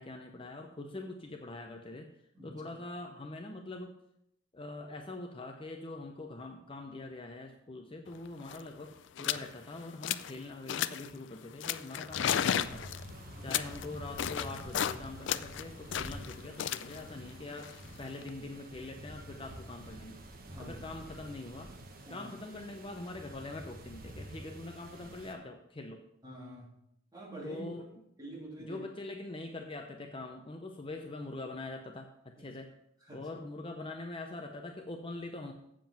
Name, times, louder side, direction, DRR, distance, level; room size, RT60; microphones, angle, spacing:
voice 1, 0.0-2.1 2.4-3.9 4.5-8.9 9.2-12.9 13.4-17.7 18.0-20.1 20.6-21.7 22.1-26.0 27.4-27.9 28.6-32.7 33.1-35.5, left 2 dB, 25° left, 4 dB, 0.6 m, -43 dB
sound 1, 8.1-8.2 8.4-8.7 9.2-9.5 9.8-10.4 10.7-11.1 11.6-15.0 15.3-18.3, left 9 dB, 65° left, 0.4 m, -34 dB
sound 2, 12.1-25.3, right 1 dB, 50° right, 1.2 m, -48 dB
voice 2, 20.4-20.8 22.0-22.3 26.2-26.7 27.1-27.6 28.2-28.9 32.4-32.5 33.1-33.3, right 1 dB, 20° right, -4 dB, 3.0 m, -46 dB
7.5 x 7.4 x 5.7 m, 0.77 s
head